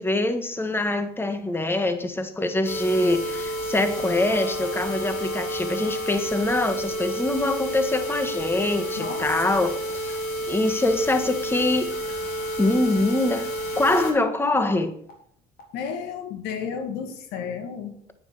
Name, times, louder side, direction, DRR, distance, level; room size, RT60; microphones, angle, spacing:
voice 1, 0.0-11.9 12.6-13.5 13.7-15.0, left 2 dB, 15° left, 1.5 m, -24 dB
sound 1, 2.6-14.1 14.6-14.7 15.1-15.2 15.6-15.7, equal, 65° left, 3.7 m, -30 dB
voice 2, 9.0-9.3 15.7-17.9, left 6 dB, 85° left, 2.0 m, -32 dB
9.8 x 9.4 x 6.6 m
cardioid pair, 110°, 17 cm